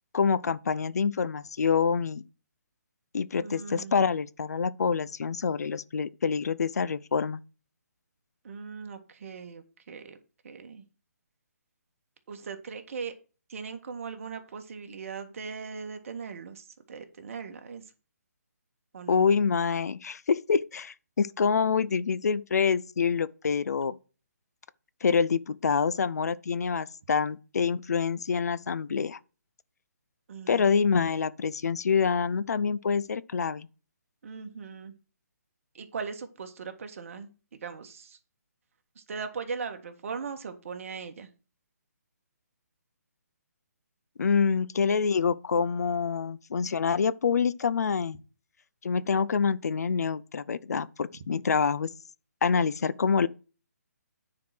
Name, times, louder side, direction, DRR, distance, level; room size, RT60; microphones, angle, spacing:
voice 1, 0.1-2.2 3.1-7.4 19.1-24.0 25.0-29.2 30.5-33.7 44.2-48.2 48.8-51.9 52.4-53.3, left 6 dB, 70° left, 0.6 m, -26 dB
voice 2, 3.4-3.9 8.4-10.2 10.4-10.8 12.3-13.1 13.5-17.8 18.9-19.3 30.3-30.6 34.2-34.9 35.7-37.3 37.6-38.2 38.9-41.3, right 5 dB, 50° right, 1.7 m, -39 dB
9.6 x 4.7 x 5.9 m
hypercardioid pair, 155°, 9 cm